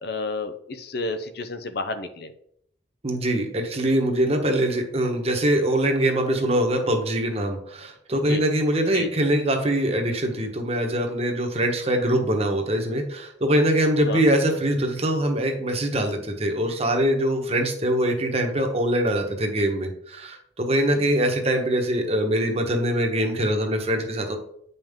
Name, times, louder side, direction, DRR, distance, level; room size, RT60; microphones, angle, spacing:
voice 1, 0.0-2.3 8.3-8.4 8.9-9.1 14.1-14.2 20.9-21.0, left 3 dB, 60° left, 9 dB, 0.6 m, -31 dB
voice 2, 3.0-24.4, right 1 dB, 35° right, 3 dB, 1.2 m, -23 dB
8.9 x 5.6 x 3.6 m, 0.70 s
head